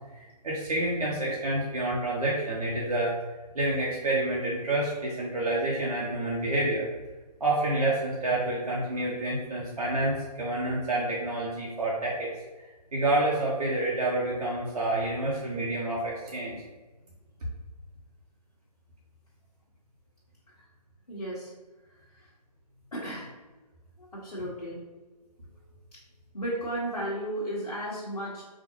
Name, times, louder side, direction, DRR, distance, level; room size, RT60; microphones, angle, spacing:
voice 1, 0.1-3.1 3.5-6.9 7.4-12.3 12.9-16.6, right 2 dB, 65° right, -5 dB, 1.0 m, -28 dB
voice 2, 21.1-21.5 22.1-22.3 22.9-23.3 24.0-24.8 26.3-28.4, right 1 dB, 65° left, -9 dB, 1.4 m, -34 dB
5.0 x 2.8 x 2.8 m, 1.2 s
figure-of-eight pair, 150°, 21 cm